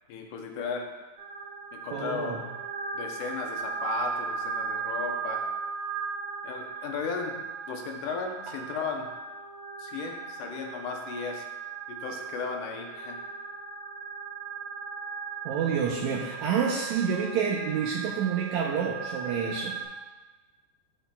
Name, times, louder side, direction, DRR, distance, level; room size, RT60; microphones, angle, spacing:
voice 1, 0.1-0.9 1.7-2.4 2.9-5.4 6.4-7.3 7.7-9.1 9.8-11.5 11.9-13.2, left 5 dB, 75° left, 2 dB, 2.1 m, -35 dB
sound 1, 1.2-19.9, right 5 dB, 55° right, 3.2 m, -37 dB
voice 2, 1.9-2.4 15.4-19.8, right 7 dB, 85° right, -2 dB, 1.6 m, -28 dB
12.5 x 4.4 x 2.2 m, 1.2 s
omnidirectional pair, 4.0 m